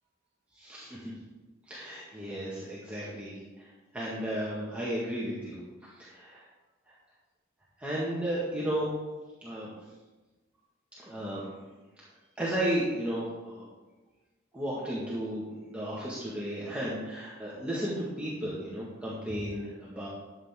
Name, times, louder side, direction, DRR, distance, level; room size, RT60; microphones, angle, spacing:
voice 1, 0.5-1.1 1.7-6.4 7.8-8.9 9.4-9.7 11.0-11.4 12.4-13.6 14.5-20.1, right 1 dB, 5° right, -8 dB, 1.8 m, -34 dB
12.5 x 7.8 x 3.7 m, 1.2 s
head